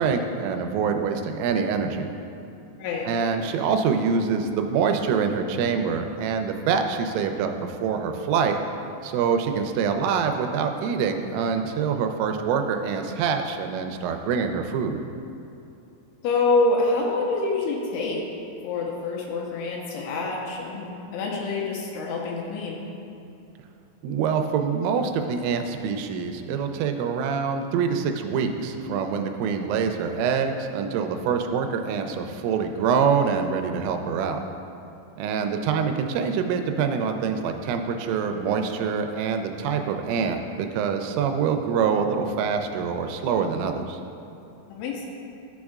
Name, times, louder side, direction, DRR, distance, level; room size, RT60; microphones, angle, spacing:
voice 1, 0.0-2.1 3.1-8.6 9.0-15.0 24.0-34.4 35.2-44.0, right 6 dB, 90° right, 5 dB, 3.2 m, -25 dB
voice 2, 2.7-3.1 16.2-18.3 18.6-22.8 44.7-45.1, left 3 dB, 80° left, -2 dB, 3.1 m, -26 dB
13.5 x 6.3 x 2.4 m, 2.7 s
omnidirectional pair, 5.7 m